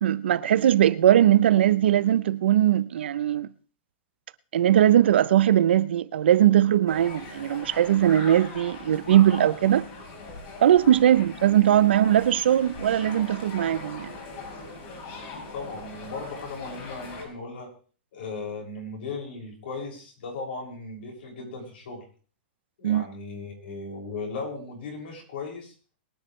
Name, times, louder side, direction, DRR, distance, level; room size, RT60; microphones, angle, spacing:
voice 1, 0.0-3.5 4.5-9.9 10.6-14.1 22.8-23.0, right 11 dB, 85° right, 0.8 m, -20 dB
sound 1, 6.9-17.2, left 3 dB, 40° left, 6.2 m, -41 dB
voice 2, 15.3-17.7 18.1-22.0 22.8-25.7, left 3 dB, 75° left, 6.7 m, -37 dB
22.0 x 10.0 x 3.3 m
supercardioid pair, 165°, 6 cm